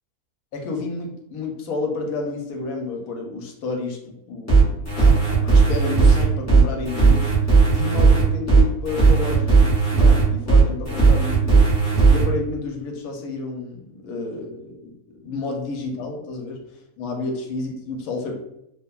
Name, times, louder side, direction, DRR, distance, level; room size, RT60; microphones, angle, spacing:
voice 1, 0.5-7.3 7.7-11.7 12.1-14.9 15.2-16.6 17.0-18.4, left 3 dB, 75° left, 1 dB, 1.0 m, -30 dB
sound 1, 4.5-12.2, right 4 dB, 20° left, 0.4 m, -15 dB
2.8 x 2.1 x 2.3 m, 0.82 s
omnidirectional pair, 1.6 m